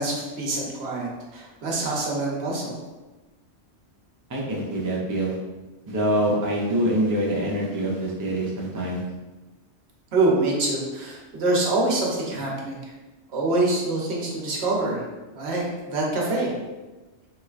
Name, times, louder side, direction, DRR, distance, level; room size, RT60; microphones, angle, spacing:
voice 1, 0.0-2.8 10.1-12.8 13.3-15.1 15.3-16.5, right 2 dB, 70° right, -2 dB, 1.0 m, -25 dB
voice 2, 4.3-5.4 5.9-9.0, right 1 dB, 30° right, -3 dB, 0.3 m, -25 dB
3.1 x 3.1 x 2.4 m, 1.2 s
omnidirectional pair, 1.1 m